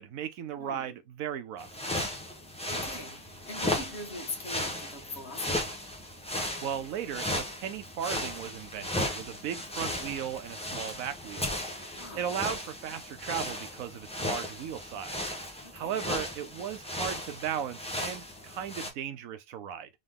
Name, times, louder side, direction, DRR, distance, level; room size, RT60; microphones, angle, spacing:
voice 1, 0.0-1.7 6.6-15.3 15.7-19.9, right 9 dB, 85° right, 1.1 m, -36 dB
voice 2, 0.5-1.0 2.7-5.8 11.9-12.3 15.6-16.0, left 2 dB, 50° left, 1.6 m, -42 dB
sound 1, 1.6-18.9, left 1 dB, 5° left, 0.8 m, -36 dB
3.9 x 3.3 x 3.5 m
omnidirectional pair, 1.4 m